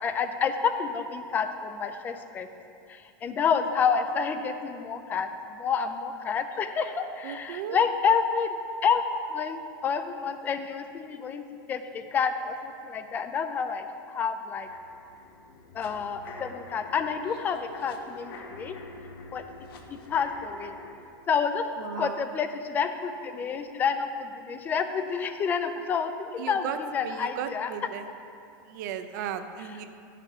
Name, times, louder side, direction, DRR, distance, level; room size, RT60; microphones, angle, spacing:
voice 1, 0.0-2.5 2.9-8.6 8.8-9.0 9.3-14.7 15.7-18.8 19.3-19.4 19.9-20.8 21.3-21.6 22.0-27.7, left 6 dB, 15° left, 9 dB, 0.4 m, -29 dB
voice 2, 7.2-7.8 21.8-22.3 26.4-26.8 27.0-28.0 28.7-29.9, right 9 dB, 55° right, 9 dB, 0.6 m, -35 dB
sound 1, 14.6-21.0, left 3 dB, 85° left, 1.1 m, -46 dB
10.5 x 6.7 x 4.9 m, 2.6 s
supercardioid pair, 170°, 12 cm